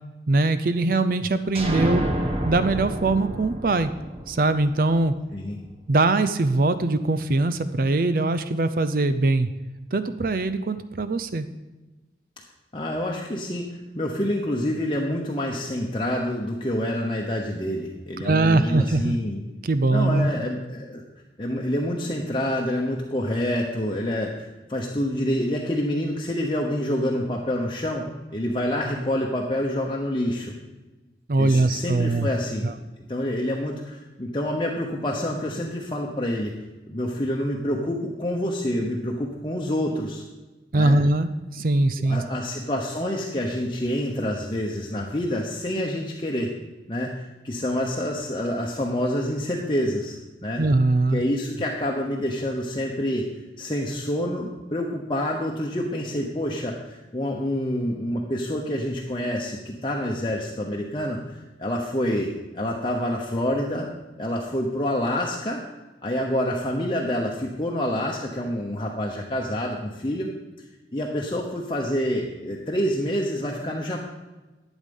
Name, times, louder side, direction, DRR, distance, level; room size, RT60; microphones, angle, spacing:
voice 1, 0.3-2.1 2.5-3.9 4.3-5.1 5.9-9.5 9.9-11.4 18.2-19.2 19.6-20.3 31.3-32.3 32.6-32.7 40.7-42.2 50.6-51.2, right 2 dB, 55° right, 12 dB, 0.5 m, -22 dB
sound 1, 1.5-5.2, right 1 dB, 35° right, 1.1 m, -29 dB
voice 2, 12.7-19.4 19.9-21.0 21.4-30.5 31.4-32.7 33.1-36.5 36.9-40.2 40.7-41.0 42.0-46.5 46.9-50.6 51.1-53.3 53.6-63.9 64.2-65.6 66.0-70.3 70.9-74.0, left 1 dB, 30° left, -1 dB, 1.0 m, -27 dB
12.0 x 8.2 x 5.4 m, 1.1 s
head